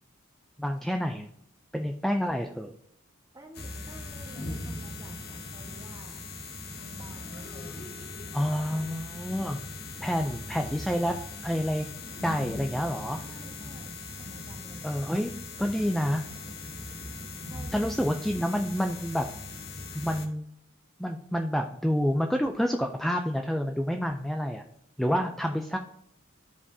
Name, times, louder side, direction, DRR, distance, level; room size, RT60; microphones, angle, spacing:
voice 1, 0.6-1.3 1.7-2.7 8.3-9.6 10.0-11.2 11.4-11.9 12.2-13.2 14.8-16.2 17.7-19.3 19.9-20.5 21.0-24.6 25.0-25.8, equal, ahead, 4 dB, 0.3 m, -28 dB
voice 2, 3.3-6.2 6.8-7.9 13.0-14.9 17.5-17.9 25.0-25.3, equal, 20° right, 1 dB, 1.3 m, -50 dB
sound 1, 3.5-20.3, left 3 dB, 50° left, 1.0 m, -40 dB
13.5 x 4.9 x 2.7 m, 0.74 s
head